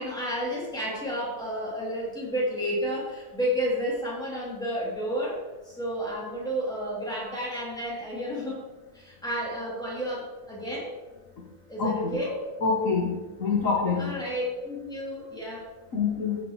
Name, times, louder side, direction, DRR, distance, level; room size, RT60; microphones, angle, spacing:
voice 1, 0.0-8.6 8.9-10.9 11.7-12.5 14.0-15.6, equal, 5° left, -6 dB, 3.1 m, -31 dB
voice 2, 11.8-12.2 12.6-13.1 13.4-14.1 15.9-16.4, left 5 dB, 60° left, -2 dB, 1.7 m, -25 dB
15.0 x 6.6 x 3.3 m, 1.2 s
omnidirectional pair, 1.6 m